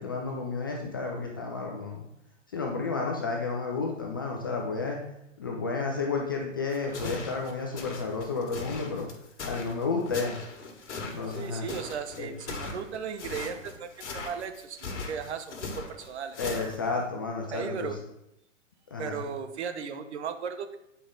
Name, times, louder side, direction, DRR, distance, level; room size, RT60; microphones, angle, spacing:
voice 1, 0.0-2.1 2.5-5.0 5.4-9.1 9.4-10.4 11.0-11.7 12.2-12.3 16.4-18.0 18.9-19.2, left 4 dB, 20° left, 0 dB, 0.3 m, -31 dB
sound 1, 6.7-17.0, left 3 dB, 60° left, 1.7 m, -39 dB
voice 2, 11.3-16.6 17.5-18.0 19.0-20.8, right 7 dB, 55° right, 9 dB, 0.9 m, -36 dB
8.3 x 5.0 x 3.8 m, 0.84 s
hypercardioid pair, 125°, 39 cm